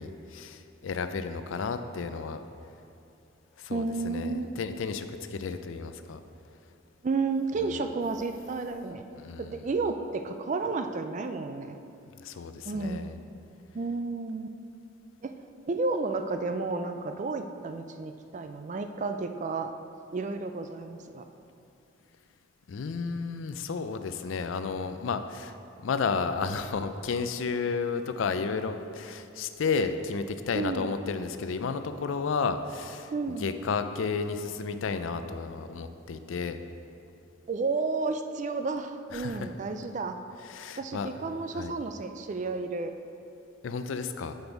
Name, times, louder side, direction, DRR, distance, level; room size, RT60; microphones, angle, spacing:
voice 1, 0.0-2.4 3.6-6.2 9.1-9.7 12.2-13.2 22.7-25.5 25.8-33.1 33.4-36.6 39.1-39.5 40.5-41.1 41.5-41.7 43.6-44.4, left 5 dB, 75° left, 9 dB, 0.4 m, -32 dB
voice 2, 3.7-4.5 7.0-9.0 9.4-11.8 12.7-13.1 13.7-14.5 15.2-15.3 15.7-19.7 20.1-21.2 30.5-30.9 33.1-33.5 37.5-40.2 40.8-42.9, right 3 dB, 35° right, 7 dB, 0.3 m, -32 dB
7.9 x 5.3 x 4.6 m, 2.6 s
head